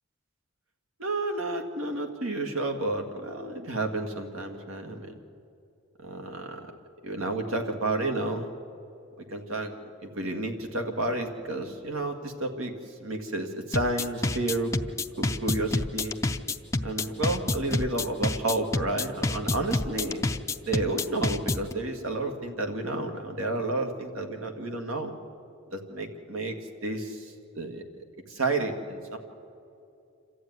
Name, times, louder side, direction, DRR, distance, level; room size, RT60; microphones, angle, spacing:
voice 1, 1.0-5.0 6.0-6.6 7.0-8.5 9.3-9.7 10.0-12.7 13.0-14.7 15.2-16.2 16.8-20.2 20.6-25.1 25.7-26.5 26.8-27.2 27.5-27.8 28.3-29.2, right 2 dB, 85° right, 4 dB, 2.0 m, -31 dB
sound 1, 13.7-21.7, left 2 dB, 15° left, 0.5 m, -28 dB
27.5 x 13.5 x 9.5 m, 2.6 s
head